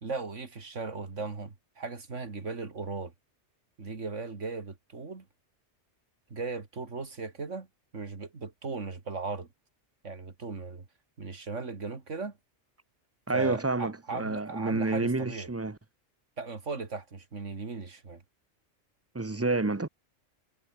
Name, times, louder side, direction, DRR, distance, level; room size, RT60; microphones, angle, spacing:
voice 1, 0.0-3.1 3.8-5.3 6.3-7.7 7.9-9.5 10.0-10.9 11.2-12.4 13.3-15.5 16.4-18.2, right 4 dB, 85° right, 2.9 m, -37 dB
voice 2, 13.3-15.8 19.1-19.9, right 3 dB, 15° right, 0.7 m, -29 dB
omnidirectional pair, 1.2 m